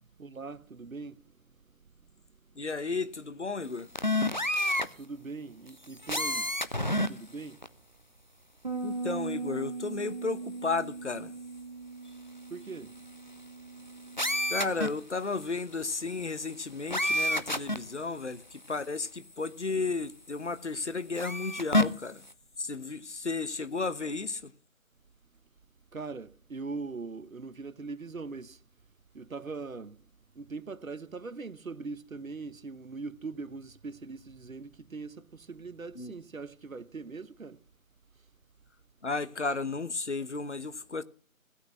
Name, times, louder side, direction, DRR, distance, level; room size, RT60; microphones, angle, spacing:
voice 1, 0.2-1.2 5.0-6.5 7.1-7.6 12.5-13.0 25.9-28.6 29.1-30.0 30.3-37.6, right 4 dB, 80° right, 1.1 m, -41 dB
voice 2, 2.6-3.9 8.8-11.3 14.5-22.2 22.6-24.5 35.9-36.2 39.0-41.0, left 3 dB, 55° left, 1.2 m, -33 dB
sound 1, 4.0-4.9 6.0-7.1 7.6-7.7 14.2-14.9 16.9-17.8 18.7-18.8 21.2-21.8, left 1 dB, 35° left, 0.7 m, -28 dB
Bass guitar, 8.6-14.9, right 4 dB, 30° right, 1.8 m, -39 dB
16.5 x 8.8 x 7.4 m
figure-of-eight pair, 170°, 41 cm